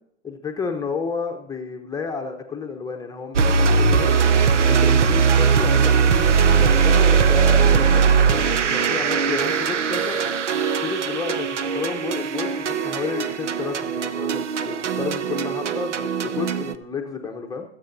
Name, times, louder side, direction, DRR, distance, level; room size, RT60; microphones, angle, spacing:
voice 1, 0.2-4.2 4.7-10.2 10.8-17.6, left 5 dB, 10° left, 2 dB, 0.9 m, -31 dB
sound 1, 3.3-16.7, right 6 dB, 90° right, 0.7 m, -20 dB
19.0 x 8.1 x 2.7 m, 0.70 s
hypercardioid pair, 105°, 35 cm